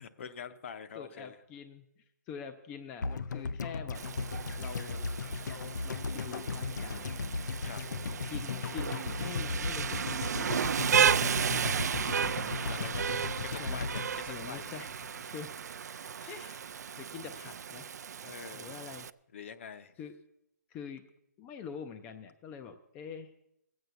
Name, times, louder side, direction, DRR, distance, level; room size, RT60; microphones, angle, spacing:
voice 1, 0.0-1.4 7.6-7.8 12.5-13.1 13.4-14.8 16.1-16.4 18.2-18.8 19.3-19.9, left 7 dB, 45° left, 11 dB, 0.8 m, -45 dB
voice 2, 1.0-1.9 2.3-4.0 4.5-5.2 5.4-7.2 8.1-10.6 11.0-11.1 11.6-12.0 12.4-12.8 13.6-13.9 14.3-15.6 16.3-16.6 17.0-17.9 18.5-19.1 20.0-20.1 20.7-21.0 21.4-23.3, left 7 dB, 15° left, 8 dB, 0.4 m, -45 dB
sound 1, 3.0-15.2 15.5-15.6, left 4 dB, 85° left, 0.6 m, -36 dB
Rain, 3.9-19.1, right 7 dB, 65° right, 0.4 m, -34 dB
17.5 x 7.9 x 6.8 m, 0.80 s
hypercardioid pair, 165°, 10 cm